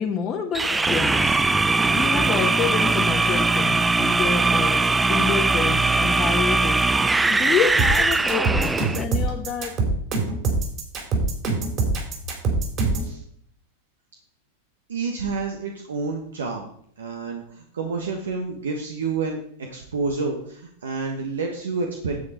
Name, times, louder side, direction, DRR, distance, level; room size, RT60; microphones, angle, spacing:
voice 1, 0.0-1.4 1.9-9.8, left 7 dB, 30° left, 1.1 m, -28 dB
sound 1, 0.5-9.0, right 3 dB, 10° right, 0.4 m, -20 dB
sound 2, 7.8-13.1, right 3 dB, 40° right, 3.9 m, -23 dB
voice 2, 14.9-16.6 17.0-22.2, right 4 dB, 80° right, 1.4 m, -29 dB
9.5 x 7.8 x 4.4 m
hypercardioid pair, 100°, 0 cm